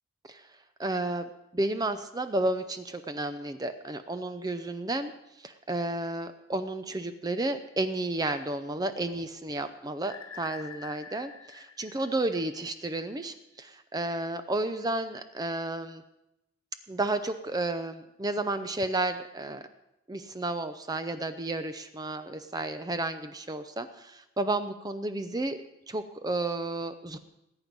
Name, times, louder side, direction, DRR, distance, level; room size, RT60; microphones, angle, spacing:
voice 1, 0.8-5.1 5.4-16.0 16.9-19.6 20.1-25.6 25.9-27.2, right 2 dB, 20° right, 9 dB, 0.5 m, -32 dB
sound 1, 10.0-12.9, left 6 dB, 70° left, 1.8 m, -47 dB
20.0 x 8.9 x 5.3 m, 0.89 s
head